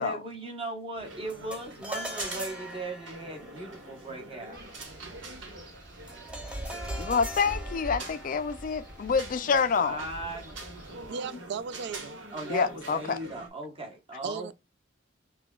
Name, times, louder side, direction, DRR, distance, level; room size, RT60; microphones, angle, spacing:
voice 1, 0.0-4.6 9.5-10.6 12.3-14.5, right 2 dB, 30° right, 1.0 m, -38 dB
sound 1, 0.9-13.5, right 2 dB, 90° right, 1.2 m, -45 dB
sound 2, 1.3-10.8, equal, 5° right, 0.6 m, -43 dB
Wind, 4.5-11.1, right 1 dB, 45° right, 1.8 m, -43 dB
voice 2, 7.0-10.0 12.5-13.2, left 5 dB, 45° left, 0.3 m, -27 dB
voice 3, 11.1-12.2 14.2-14.5, right 6 dB, 60° right, 0.3 m, -36 dB
5.8 x 2.3 x 2.2 m
head